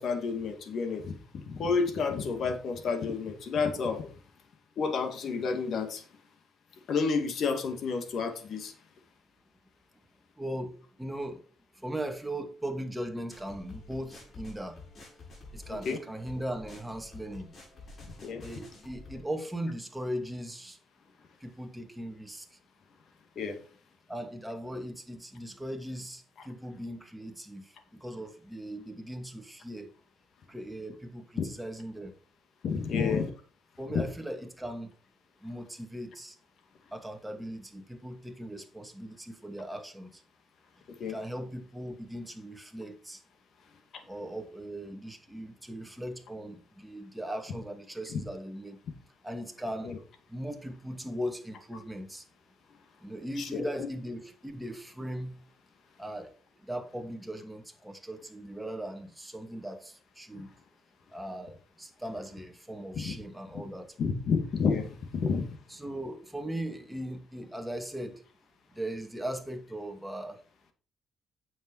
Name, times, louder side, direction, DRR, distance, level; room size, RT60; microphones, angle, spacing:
voice 1, 0.0-4.1 4.8-6.0 6.9-8.7 15.9-16.0 18.2-18.4 23.4-23.6 31.4-31.5 32.6-33.3 33.9-34.0 41.0-41.2 48.1-48.2 49.8-50.0 53.4-53.9 63.0-63.1 64.0-65.5, left 5 dB, 65° left, 2.4 m, -30 dB
voice 2, 10.4-11.4 11.7-14.8 15.5-17.5 18.4-20.8 21.4-22.6 24.1-29.9 30.5-32.1 32.9-33.3 33.8-34.9 35.4-36.4 36.9-40.2 41.0-43.2 44.0-48.8 49.2-49.9 50.3-52.2 53.0-55.4 56.0-60.5 61.1-64.0 65.7-68.2 68.7-70.4, right 1 dB, 5° right, 2.4 m, -39 dB
sound 1, 13.3-19.2, left 3 dB, 45° left, 5.7 m, -49 dB
9.1 x 7.3 x 4.8 m
cardioid pair, 90°, 0 cm